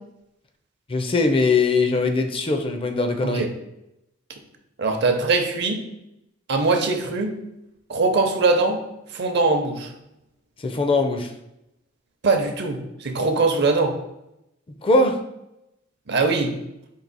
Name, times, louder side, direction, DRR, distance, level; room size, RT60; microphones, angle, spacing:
voice 1, 0.9-3.4 10.6-11.3 14.8-15.2, left 3 dB, 25° left, 5 dB, 0.4 m, -21 dB
voice 2, 4.8-5.8 6.5-7.4 7.9-8.8 9.1-9.9 12.2-14.0 16.1-16.6, right 3 dB, 60° right, 5 dB, 0.7 m, -21 dB
4.6 x 2.8 x 4.0 m, 0.86 s
head